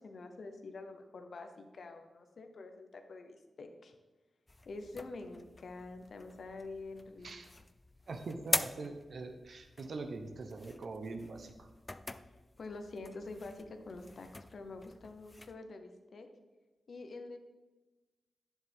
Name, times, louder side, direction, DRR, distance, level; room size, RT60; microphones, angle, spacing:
voice 1, 0.0-3.9 4.6-7.4 12.6-16.3 16.9-17.4, left 3 dB, 65° left, 6 dB, 0.9 m, -47 dB
sound 1, 4.5-15.6, left 2 dB, 20° left, 0.4 m, -43 dB
voice 2, 8.1-11.7, right 3 dB, 65° right, 6 dB, 0.8 m, -43 dB
10.5 x 7.2 x 3.6 m, 1.2 s
wide cardioid pair, 95°, 0 cm